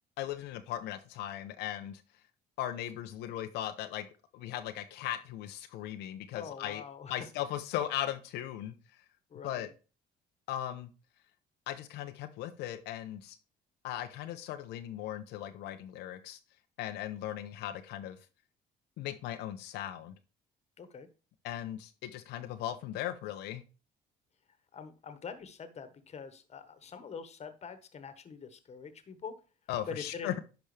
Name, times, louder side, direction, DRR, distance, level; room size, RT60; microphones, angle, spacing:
voice 1, 0.2-2.0 2.6-4.1 4.3-6.8 7.1-8.7 9.4-9.7 10.5-10.9 11.7-13.4 13.8-16.4 16.8-18.2 19.0-20.1 21.4-23.6 29.7-30.4, left 12 dB, 85° left, 7 dB, 0.8 m, -38 dB
voice 2, 6.3-7.1 9.3-9.7 20.8-21.1 24.7-29.3 29.9-30.3, left 6 dB, 40° left, 11 dB, 1.4 m, -44 dB
10.5 x 5.2 x 3.3 m, 0.34 s
cardioid pair, 110°, 17 cm